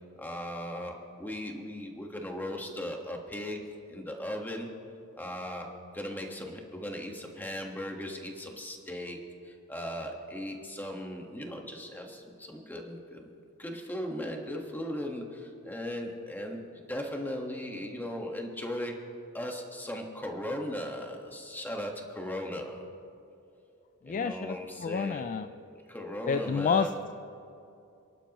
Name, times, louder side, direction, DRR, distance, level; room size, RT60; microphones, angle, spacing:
voice 1, 0.2-4.7 5.2-19.1 19.3-22.8 24.0-25.3 25.9-26.9, left 1 dB, 10° left, 2 dB, 1.5 m, -38 dB
voice 2, 24.0-25.5 26.3-27.1, left 5 dB, 35° left, 9 dB, 0.3 m, -30 dB
28.5 x 11.5 x 3.0 m, 2.6 s
head